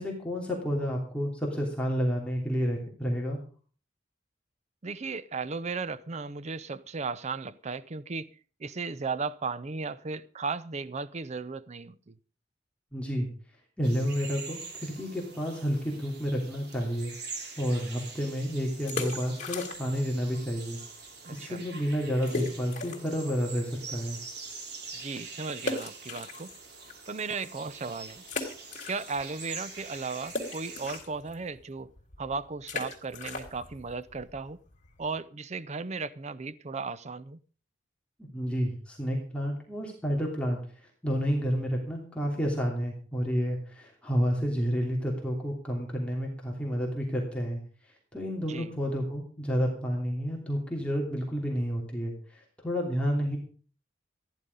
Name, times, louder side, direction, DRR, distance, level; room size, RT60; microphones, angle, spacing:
voice 1, 0.0-3.4 12.9-13.3 13.8-17.1 17.6-20.8 21.3-24.2 38.3-40.6 41.0-47.6 48.1-53.4, equal, 5° left, 3.1 m, -30 dB
voice 2, 4.8-8.3 8.6-12.2 21.2-21.6 25.0-26.5 27.1-28.2 28.9-31.9 32.2-34.6 35.0-37.4 48.5-48.7, right 4 dB, 40° right, 0.6 m, -36 dB
sound 1, 13.8-31.0, right 4 dB, 60° right, 3.3 m, -44 dB
sound 2, 18.7-20.1 20.4-20.5 21.1-21.2 21.4-21.5 22.3-23.2 23.7-23.8 25.6-26.9 27.4-27.5 28.2-29.4 29.7-35.2, left 3 dB, 40° left, 3.4 m, -38 dB
15.0 x 11.0 x 5.4 m
head